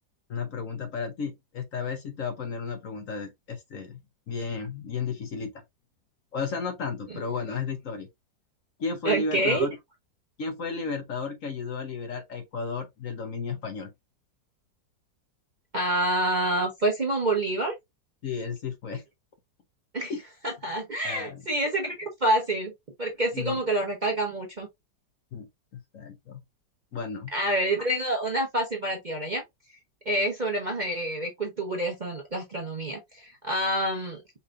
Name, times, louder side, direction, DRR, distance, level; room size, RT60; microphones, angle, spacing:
voice 1, 0.3-5.5 6.3-8.1 8.8-9.8 10.4-13.9 18.2-19.0 20.1-20.2 21.0-21.5 23.3-23.6 25.3-25.5 25.9-26.4 26.9-27.3, left 5 dB, 55° left, 1.2 m, -33 dB
voice 2, 9.0-9.7 15.7-17.7 19.9-20.1 20.4-22.7 23.0-24.7 27.3-29.4 30.1-34.2, right 1 dB, 35° right, 0.9 m, -27 dB
5.6 x 3.3 x 2.5 m
omnidirectional pair, 1.9 m